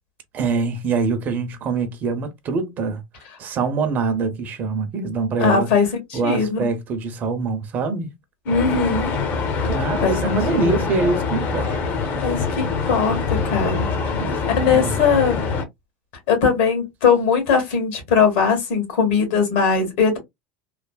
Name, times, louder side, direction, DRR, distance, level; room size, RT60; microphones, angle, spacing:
voice 1, 0.3-3.0 3.4-5.7 6.1-8.1 9.7-12.1 14.1-15.0, right 4 dB, 35° right, 0.6 m, -24 dB
voice 2, 5.4-6.6 8.4-9.2 10.0-10.7 12.2-14.2 14.5-15.4 16.3-20.2, left 5 dB, 75° left, 1.5 m, -20 dB
sound 1, 8.5-15.7, left 4 dB, 40° left, 0.7 m, -24 dB
3.2 x 2.0 x 2.2 m
supercardioid pair, 145°, 5 cm